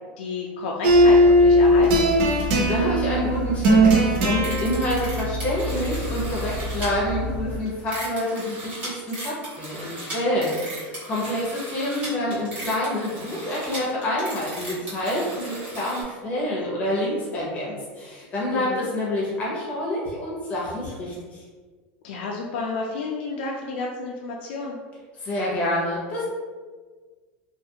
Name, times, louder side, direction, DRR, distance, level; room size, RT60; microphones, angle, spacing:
voice 1, 0.2-2.2 18.5-18.9 22.0-24.8, left 3 dB, 90° left, -1 dB, 0.3 m, -31 dB
sound 1, 0.8-7.6, equal, 55° right, 0.6 m, -19 dB
voice 2, 2.6-21.4 25.2-26.2, left 1 dB, 25° left, -5 dB, 0.8 m, -27 dB
sound 2, 4.4-6.9 7.7-16.0, right 1 dB, 25° right, 0.9 m, -37 dB
2.4 x 2.4 x 2.7 m, 1.5 s
supercardioid pair, 170°, 6 cm